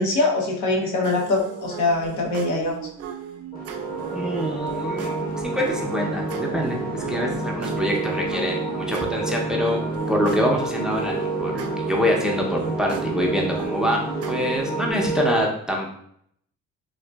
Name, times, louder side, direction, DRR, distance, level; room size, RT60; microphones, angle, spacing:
voice 1, 0.0-2.8, left 2 dB, 80° left, 0 dB, 0.8 m, -23 dB
sound 1, 1.0-14.9, right 7 dB, 55° right, 0.5 m, -36 dB
sound 2, 3.5-15.4, right 2 dB, 30° left, 0.8 m, -29 dB
voice 2, 4.1-9.8 10.1-11.1 11.4-14.0 14.3-15.9, equal, ahead, -1 dB, 0.6 m, -25 dB
3.8 x 2.4 x 2.2 m, 0.68 s
cardioid pair, 90°, 30 cm